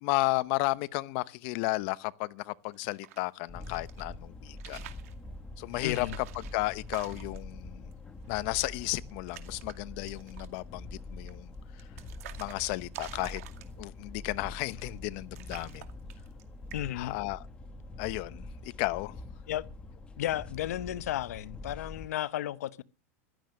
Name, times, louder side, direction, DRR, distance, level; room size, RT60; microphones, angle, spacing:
voice 1, 0.0-4.8 5.6-7.9 8.3-11.5 12.4-13.4 13.8-15.8 16.9-17.4 18.0-19.1, left 21 dB, 50° left, 0.9 m, -33 dB
sound 1, 2.7-4.0 4.5-5.1 5.7-7.5 7.9-8.0 8.2-8.8 9.1-9.8 10.1-10.6 11.3-14.0 14.7-15.1 15.3-16.4 16.7-17.1, right 13 dB, 70° right, 2.3 m, -48 dB
sound 2, 3.5-22.1, left 2 dB, 15° left, 1.4 m, -45 dB
voice 2, 5.8-6.2 16.7-17.1 19.5-19.6 20.2-22.8, left 13 dB, 85° left, 0.9 m, -33 dB
15.5 x 12.5 x 6.5 m
supercardioid pair, 160°, 8 cm